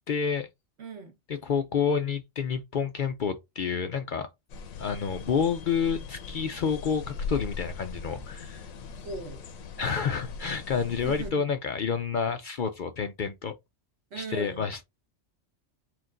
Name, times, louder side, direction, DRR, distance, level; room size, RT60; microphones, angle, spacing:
voice 1, 0.1-0.5 1.3-4.3 4.8-8.7 9.8-13.5 14.2-14.8, left 6 dB, 65° left, 0.4 m, -29 dB
voice 2, 0.8-1.2 8.9-9.4 11.0-11.5 14.1-14.7, right 4 dB, 55° right, 1.1 m, -39 dB
sound 1, 4.5-11.3, left 4 dB, 85° left, 1.1 m, -40 dB
4.3 x 2.5 x 3.7 m
omnidirectional pair, 1.4 m